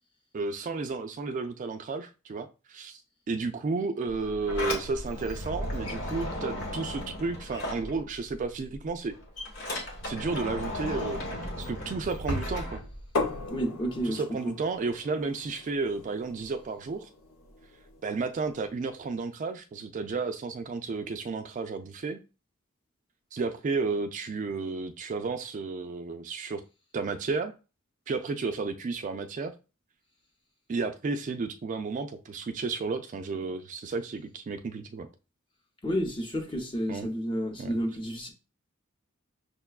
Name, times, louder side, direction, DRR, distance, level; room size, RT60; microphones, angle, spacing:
voice 1, 0.3-3.0 3.3-9.1 10.0-11.2 11.6-12.8 14.0-17.1 18.0-22.2 23.3-26.6 26.9-27.5 28.1-29.5 30.7-35.1 36.9-37.1 37.6-37.8, right 4 dB, 40° right, 0.3 m, -32 dB
Sliding door, 4.1-8.4 8.7-13.5, left 1 dB, 65° left, 1.3 m, -35 dB
sound 1, 13.1-18.8, left 3 dB, 80° left, 0.9 m, -38 dB
voice 2, 13.5-14.5 35.8-38.3, equal, 25° left, 0.8 m, -31 dB
6.5 x 2.2 x 2.3 m
head